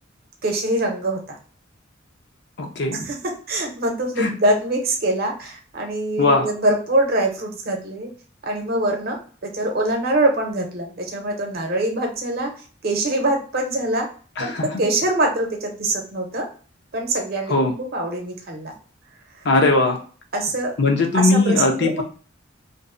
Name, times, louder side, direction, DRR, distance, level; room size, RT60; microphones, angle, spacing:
voice 1, 0.4-1.4 2.9-8.1 8.4-14.1 14.4-16.5 16.9-18.7 20.3-20.8 21.1-22.0, right 1 dB, 50° right, 2 dB, 0.7 m, -24 dB
voice 2, 2.6-3.0 4.2-4.3 6.2-6.5 14.4-14.7 17.5-17.7 19.4-20.0 20.8-22.0, left 2 dB, 60° left, 2 dB, 0.6 m, -19 dB
2.6 x 2.0 x 2.4 m, 0.41 s
head